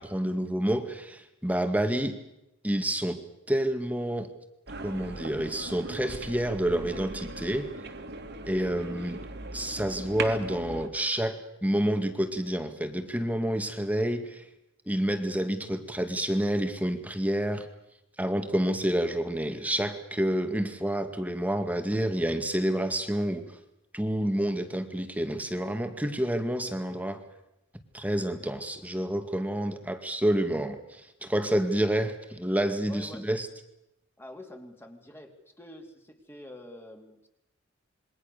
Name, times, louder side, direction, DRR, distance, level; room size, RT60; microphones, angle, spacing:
voice 1, 0.0-2.2 2.6-3.2 3.5-4.3 4.8-7.7 8.5-9.2 9.5-14.5 14.9-17.7 18.2-23.6 23.9-27.2 27.9-33.5, right 1 dB, 10° right, 7 dB, 2.1 m, -28 dB
sound 1, 4.7-10.9, right 2 dB, 55° right, 2.9 m, -39 dB
voice 2, 32.9-33.3 34.2-37.3, left 1 dB, 10° left, 3 dB, 2.9 m, -47 dB
27.5 x 23.0 x 6.8 m, 0.86 s
head